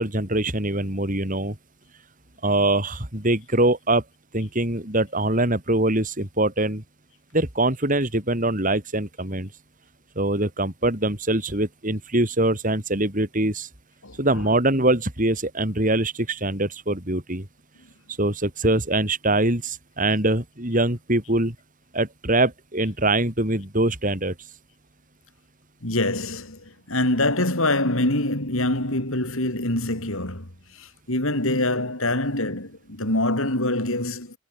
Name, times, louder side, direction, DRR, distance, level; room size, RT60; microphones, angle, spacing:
voice 1, 0.0-1.5 2.4-4.0 4.3-6.8 7.3-9.5 10.2-13.7 14.2-17.5 18.2-21.5 21.9-24.3, right 2 dB, 35° right, 4.4 m, -23 dB
voice 2, 14.0-14.6 25.8-26.6 26.9-30.5 30.8-34.4, left 1 dB, 70° left, 5.7 m, -25 dB
head